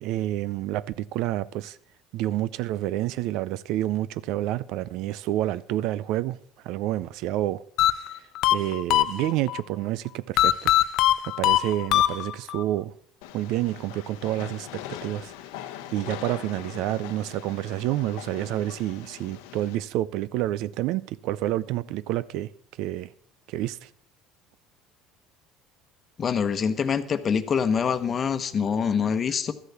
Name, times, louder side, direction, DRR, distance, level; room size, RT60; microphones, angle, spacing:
voice 1, 0.0-1.8 2.1-6.4 6.6-7.6 8.5-10.7 11.4-12.9 13.3-15.3 15.9-22.5 22.8-23.1 23.5-23.9, right 14 dB, 70° right, 0.5 m, -28 dB
sound 1, 7.8-9.6 10.4-12.6, left 14 dB, 60° left, 0.6 m, -22 dB
Train, 13.2-19.7, left 12 dB, 90° left, 0.9 m, -41 dB
voice 2, 26.2-29.5, left 6 dB, 35° left, 1.0 m, -25 dB
13.0 x 8.2 x 7.0 m
cardioid pair, 115°, 0 cm